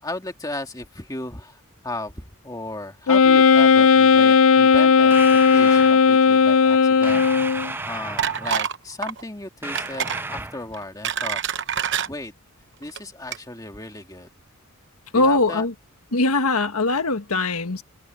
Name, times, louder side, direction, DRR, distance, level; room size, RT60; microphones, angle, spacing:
voice 1, 0.0-11.4 11.7-11.8 12.1-12.3 12.8-14.3 15.1-15.7, left 2 dB, 15° left, 2.2 m, -35 dB
Wind instrument woodwind instrument, 3.1-7.7, left 5 dB, 65° left, 0.5 m, -15 dB
sound 1, 5.1-6.0 7.0-8.6 9.6-10.7, right 2 dB, 10° right, 0.5 m, -33 dB
sound 2, 8.2-8.8 9.0-9.2 9.7-10.2 10.7-12.1 12.8-13.0 13.3-13.4, right 8 dB, 50° right, 0.9 m, -26 dB
voice 2, 15.1-15.7 16.1-17.8, left 3 dB, 80° left, 1.6 m, -21 dB
head